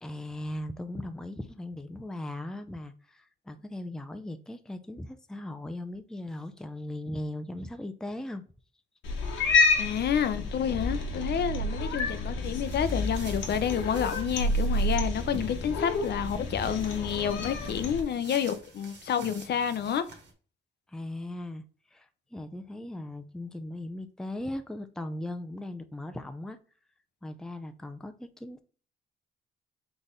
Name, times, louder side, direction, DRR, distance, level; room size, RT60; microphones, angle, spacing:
voice 1, 0.0-8.4 20.9-21.6 21.9-26.6 27.2-28.6, left 1 dB, 5° left, 0.5 m, -38 dB
Cat, 9.0-18.0, left 2 dB, 80° left, 1.2 m, -29 dB
voice 2, 9.8-20.0, left 8 dB, 55° left, 0.6 m, -29 dB
sound 1, 12.4-20.3, right 3 dB, 65° right, 1.6 m, -49 dB
4.1 x 3.4 x 3.7 m
cardioid pair, 90°, 20 cm